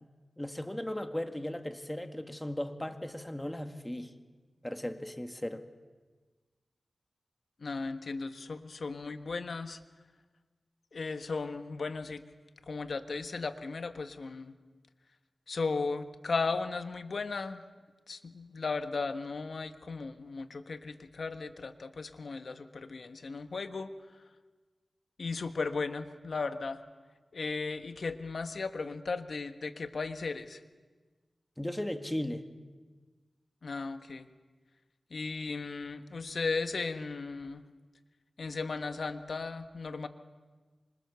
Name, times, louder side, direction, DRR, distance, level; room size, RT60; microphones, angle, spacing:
voice 1, 0.4-4.1 4.6-5.7 31.6-32.4, left 1 dB, 10° left, 7 dB, 1.9 m, -36 dB
voice 2, 7.6-9.8 10.9-12.2 12.7-14.5 15.5-17.6 18.1-23.9 25.2-26.8 27.3-30.6 33.6-34.3 35.1-37.6 38.4-40.1, left 4 dB, 70° left, 9 dB, 1.4 m, -36 dB
27.5 x 25.5 x 7.0 m, 1.3 s
wide cardioid pair, 65°, 0 cm